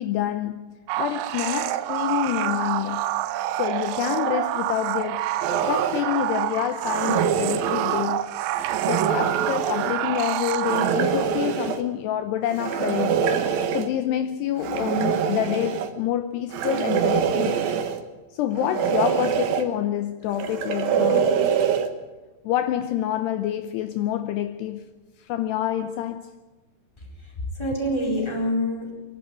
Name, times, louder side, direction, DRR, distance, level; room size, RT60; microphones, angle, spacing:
voice 1, 0.0-3.1 3.5-5.3 5.6-8.3 8.8-13.3 13.7-17.7 18.3-21.4 22.4-24.9 25.2-26.3, left 12 dB, 85° left, 2.4 m, -27 dB
sound 1, 0.9-11.2, right 13 dB, 80° right, 3.1 m, -27 dB
sound 2, 5.4-6.0 6.8-8.1 8.5-9.9 10.6-11.8 12.5-13.9 14.6-15.9 16.5-18.0 18.5-19.6 20.3-21.9, right 7 dB, 65° right, 2.6 m, -24 dB
voice 2, 27.0-28.9, equal, 5° left, 3.5 m, -27 dB
25.0 x 11.5 x 8.9 m
omnidirectional pair, 5.7 m